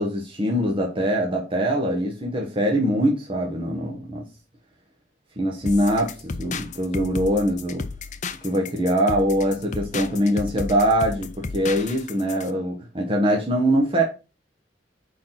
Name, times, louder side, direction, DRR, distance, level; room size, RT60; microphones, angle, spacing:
voice 1, 0.0-4.2 5.4-7.9 8.4-14.0, equal, 30° right, -1 dB, 1.2 m, -23 dB
sound 1, 5.7-12.5, left 4 dB, 40° left, 0.6 m, -34 dB
4.7 x 4.6 x 5.8 m, 0.32 s
head